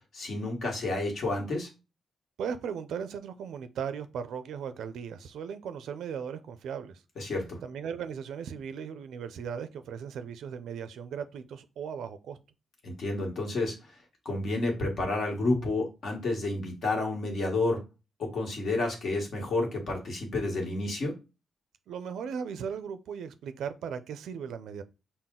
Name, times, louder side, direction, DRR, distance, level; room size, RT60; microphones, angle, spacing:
voice 1, 0.1-1.7 7.2-7.6 12.8-13.7 14.2-17.8 18.2-21.1, left 2 dB, 55° left, 1.4 m, -30 dB
voice 2, 2.4-7.0 7.6-12.4 21.9-24.8, right 7 dB, 90° right, 0.4 m, -37 dB
5.8 x 2.1 x 3.7 m
wide cardioid pair, 145°, 0 cm